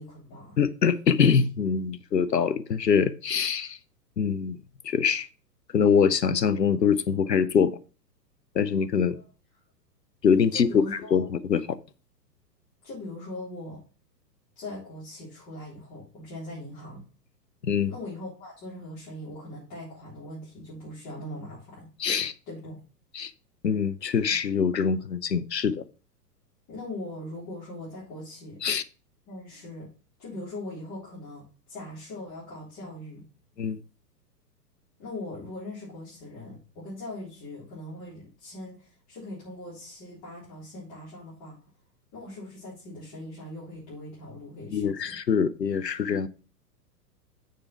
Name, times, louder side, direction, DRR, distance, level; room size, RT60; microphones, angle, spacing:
voice 1, 0.0-0.6 9.1-9.2 10.5-11.2 12.8-13.8 14.6-17.0 17.9-21.9 22.5-22.8 26.7-28.6 29.3-29.9 30.2-33.3 35.0-41.6 42.1-45.2, left 1 dB, 35° left, 3.8 m, -40 dB
voice 2, 0.6-3.8 4.2-4.6 4.9-5.3 5.7-7.8 8.6-9.2 10.2-10.8 11.1-11.6 17.6-17.9 22.0-22.3 23.1-23.3 23.6-25.8 28.6-28.8 33.6-33.8 44.7-46.3, left 6 dB, 90° left, 0.6 m, -24 dB
6.7 x 5.0 x 5.8 m
figure-of-eight pair, 110°, 48 cm